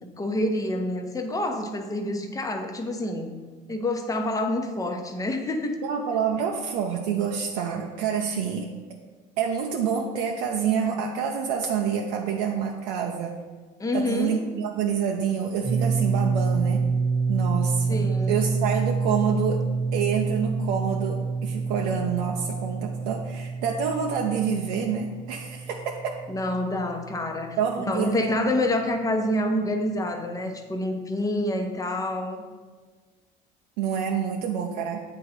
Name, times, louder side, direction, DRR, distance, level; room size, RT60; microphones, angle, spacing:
voice 1, 0.0-3.3 3.7-5.8 13.8-14.4 17.9-18.4 26.3-32.4, left 1 dB, 20° left, 4 dB, 0.9 m, -27 dB
voice 2, 5.8-8.7 9.4-13.3 13.9-16.9 17.3-19.7 19.9-26.1 27.6-28.2 33.8-35.0, right 7 dB, 85° right, 1 dB, 0.6 m, -27 dB
sound 1, 15.6-27.4, right 4 dB, 10° right, 1.4 m, -27 dB
8.2 x 3.8 x 4.3 m, 1.4 s
supercardioid pair, 90°, 19 cm